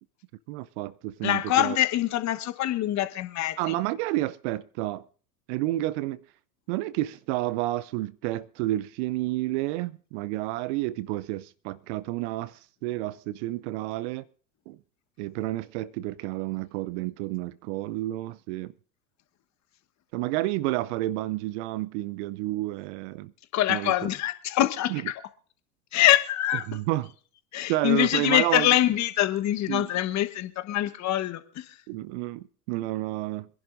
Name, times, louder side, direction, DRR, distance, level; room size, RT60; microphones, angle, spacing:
voice 1, 0.5-1.8 3.6-5.1 5.5-6.2 6.7-14.2 14.7-14.8 15.2-18.7 20.1-23.3 23.7-23.9 24.9-25.0 26.7-27.1 27.7-28.7 29.7-29.9 31.9-33.5, right 17 dB, 45° right, 0.6 m, -30 dB
voice 2, 1.2-3.8 23.5-25.1 25.9-26.8 27.5-31.7, left 13 dB, 35° left, 1.2 m, -24 dB
25.5 x 11.0 x 2.6 m
hypercardioid pair, 90°, 48 cm